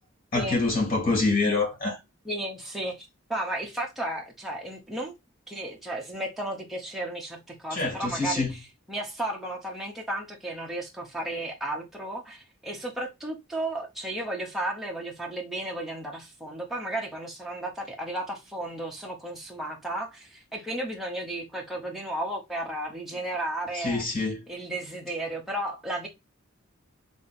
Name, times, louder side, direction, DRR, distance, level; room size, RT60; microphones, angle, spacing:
voice 1, 0.3-2.0 7.7-8.5 23.8-24.4, left 3 dB, 45° left, 2.1 m, -26 dB
voice 2, 2.2-5.1 5.5-24.2 24.5-26.1, right 1 dB, ahead, 0.7 m, -34 dB
3.6 x 2.8 x 4.1 m
head